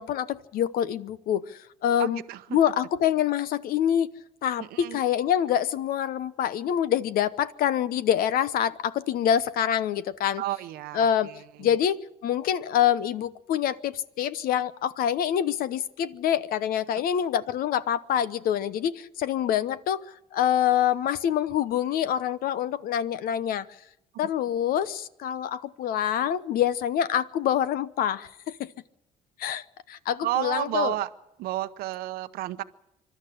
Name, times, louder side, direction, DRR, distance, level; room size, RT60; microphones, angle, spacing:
voice 1, 0.0-2.2 2.5-4.1 4.4-10.4 10.9-11.3 11.6-23.7 24.2-28.7 29.4-30.9, left 10 dB, 70° left, 1.0 m, -26 dB
voice 2, 2.0-2.6 4.6-5.0 10.4-11.7 30.2-31.1 31.4-32.6, right 15 dB, 75° right, 0.8 m, -31 dB
25.0 x 12.0 x 10.0 m
supercardioid pair, 65°, 16 cm